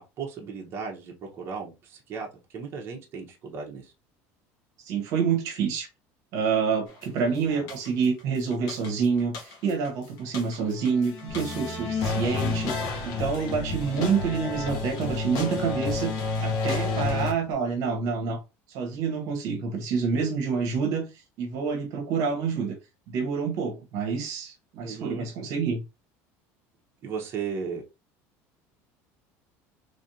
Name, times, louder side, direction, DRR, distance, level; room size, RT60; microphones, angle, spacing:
voice 1, 0.2-3.9 7.1-7.7 24.8-25.2 27.0-27.8, right 5 dB, 40° right, 1.0 m, -36 dB
voice 2, 4.9-5.9 6.3-18.4 18.7-21.1 21.4-22.8 23.1-25.8, right 5 dB, 60° right, 1.1 m, -27 dB
sound 1, 7.0-7.2 7.7-8.2 8.5-9.9 10.2-17.3, left 3 dB, 60° left, 1.4 m, -30 dB
Bass guitar, 11.3-17.5, right 2 dB, 10° right, 1.2 m, -46 dB
3.4 x 3.3 x 2.7 m
cardioid pair, 135°, 7 cm